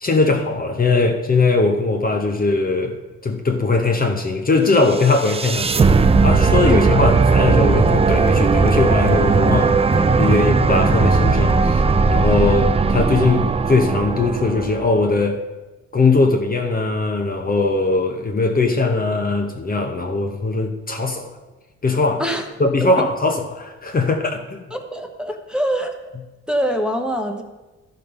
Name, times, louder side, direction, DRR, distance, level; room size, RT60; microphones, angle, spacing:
voice 1, 0.0-11.8 12.1-15.4 15.9-21.3 21.8-22.2 22.6-24.6, left 3 dB, 30° left, 3 dB, 0.9 m, -20 dB
sound 1, 4.9-15.1, right 4 dB, 20° right, 0.4 m, -17 dB
voice 2, 24.7-26.0 26.5-27.4, equal, 5° right, 3 dB, 1.1 m, -24 dB
12.0 x 5.3 x 5.4 m, 1.1 s
cardioid pair, 90°, 30 cm